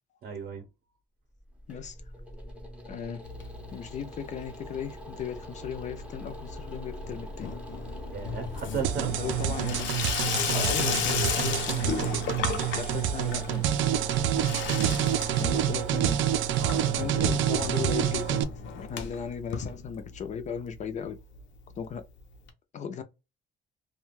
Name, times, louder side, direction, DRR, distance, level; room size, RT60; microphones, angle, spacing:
voice 1, 0.2-0.6 8.1-9.2 12.3-12.6 14.8-15.0 16.6-17.1, right 6 dB, 50° right, 0.7 m, -36 dB
sound 1, 1.3-20.3, equal, 5° right, 0.6 m, -44 dB
voice 2, 2.9-3.2 3.7-7.5 9.2-9.9 10.5-12.1 12.8-13.7 15.3-16.2 16.7-18.5 18.8-21.2 21.8-22.0 22.7-23.0, left 7 dB, 40° left, 0.4 m, -36 dB
Water tap faucet / Sink (filling or washing), 3.2-4.0 4.3-4.8 5.1-20.4 20.7-20.8 21.0-21.1 21.3-21.4 22.5-22.6, left 6 dB, 75° left, 0.7 m, -34 dB
sound 2, 8.8-18.4, right 11 dB, 90° right, 0.4 m, -27 dB
2.5 x 2.2 x 3.0 m
cardioid pair, 160°, 19 cm